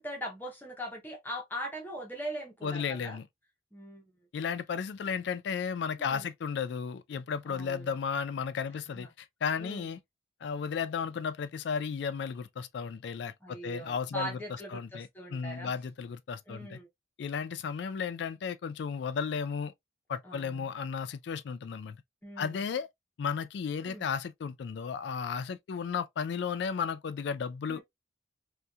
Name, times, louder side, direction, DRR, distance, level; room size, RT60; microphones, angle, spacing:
voice 1, 0.0-3.2 3.7-4.0 6.0-6.3 7.5-7.9 8.9-9.1 9.6-9.9 13.4-15.7 16.5-16.9 20.2-20.7 22.2-22.6 23.8-24.1 27.7-27.8, equal, 10° left, 0.5 m, -41 dB
voice 2, 2.6-3.3 4.3-10.0 10.4-14.4 14.7-16.8 17.2-19.7 20.1-22.0 22.4-22.9 23.2-27.8, left 6 dB, 60° left, 0.3 m, -34 dB
2.7 x 2.2 x 2.2 m
head